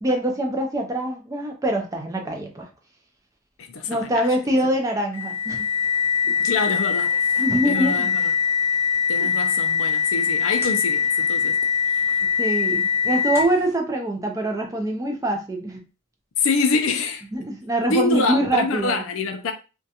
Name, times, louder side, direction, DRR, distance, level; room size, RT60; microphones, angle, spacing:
voice 1, 0.0-2.7 3.9-5.7 6.3-6.4 7.4-8.1 12.4-15.8 17.3-19.0, right 1 dB, 15° right, 0.4 m, -24 dB
voice 2, 3.6-4.1 6.4-7.2 7.6-8.3 9.1-11.6 16.4-17.2 17.9-19.5, left 4 dB, 60° left, 0.4 m, -25 dB
sound 1, 5.1-13.7, left 7 dB, 10° left, 0.8 m, -22 dB
2.4 x 2.2 x 2.7 m
head